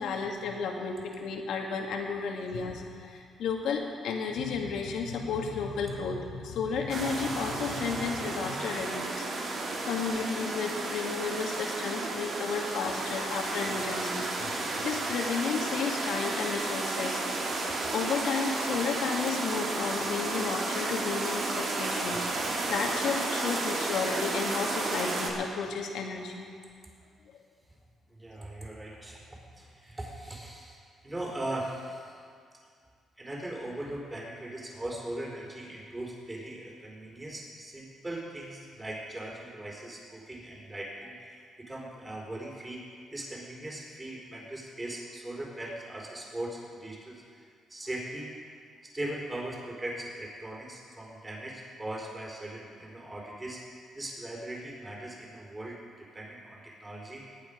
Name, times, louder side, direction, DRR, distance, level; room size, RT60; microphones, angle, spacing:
voice 1, 0.0-17.2 17.9-26.5, left 5 dB, 80° left, 1 dB, 1.9 m, -33 dB
sound 1, 6.9-25.3, right 2 dB, 60° right, 2.7 m, -32 dB
voice 2, 28.1-29.2 29.5-30.8 31.0-32.1 33.2-47.4 47.7-48.3 48.9-53.6 53.9-57.4, right 1 dB, 20° right, -2 dB, 4.0 m, -39 dB
20.0 x 9.2 x 5.1 m, 2.2 s
cardioid pair, 90°, 0 cm